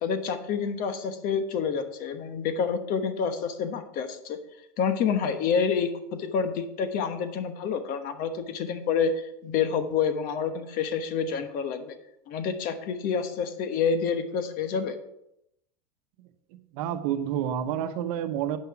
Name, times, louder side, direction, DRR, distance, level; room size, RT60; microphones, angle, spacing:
voice 1, 0.0-4.4 4.8-11.9 12.3-15.0, left 6 dB, 45° left, 9 dB, 1.2 m, -28 dB
voice 2, 16.7-18.6, right 10 dB, 60° right, 9 dB, 1.0 m, -29 dB
8.6 x 5.8 x 5.7 m, 0.82 s
supercardioid pair, 125°, 21 cm